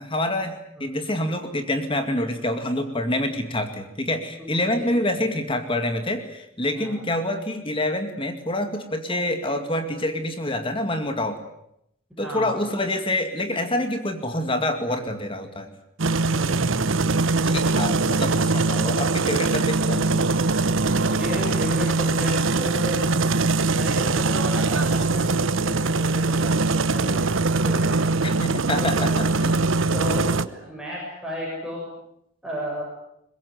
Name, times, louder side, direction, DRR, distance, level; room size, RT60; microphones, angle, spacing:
voice 1, 0.0-11.4 12.2-15.7 17.4-20.3 28.2-29.2, left 1 dB, 25° left, 7 dB, 2.2 m, -27 dB
voice 2, 12.2-12.5 16.3-17.2 21.0-23.0 23.7-28.4 28.7-29.6 29.9-31.8 32.4-32.9, equal, 5° right, -3 dB, 7.4 m, -34 dB
sound 1, 16.0-30.5, right 3 dB, 70° right, 1.0 m, -22 dB
23.5 x 21.5 x 9.5 m, 0.76 s
head